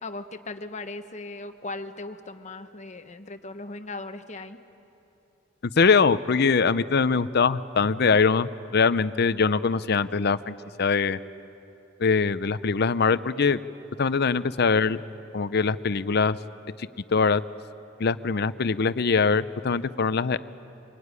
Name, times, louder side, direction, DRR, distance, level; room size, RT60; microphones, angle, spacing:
voice 1, 0.0-4.6, left 2 dB, 35° left, 8 dB, 1.1 m, -38 dB
voice 2, 5.8-11.2 12.0-13.6 14.0-15.0 15.3-16.4 17.1-17.4 18.0-20.4, left 5 dB, 55° left, 14 dB, 0.6 m, -22 dB
24.5 x 21.5 x 9.7 m, 2.9 s
head